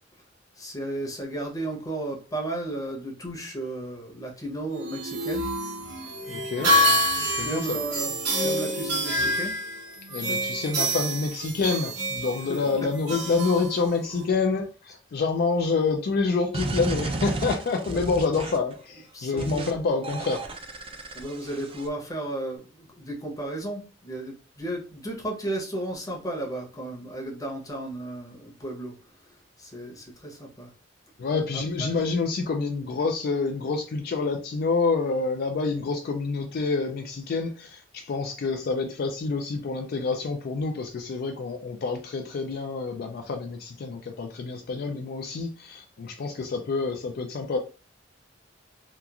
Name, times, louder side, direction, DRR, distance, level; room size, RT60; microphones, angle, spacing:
voice 1, 0.6-5.5 6.0-6.1 6.6-7.1 7.4-9.5 12.5-12.6 17.9-18.0 19.1-19.7 21.1-28.9 29.6-30.7 31.5-31.9, right 1 dB, 20° left, 0.8 m, -34 dB
sound 1, 4.7-14.3, equal, 65° right, 1.2 m, -27 dB
voice 2, 6.3-6.7 7.3-7.8 10.1-20.4 31.2-47.6, left 4 dB, 55° left, 0.3 m, -27 dB
sound 2, 16.5-18.7 19.4-19.7 20.0-21.9, right 2 dB, 30° right, 0.4 m, -33 dB
2.9 x 2.3 x 2.3 m
head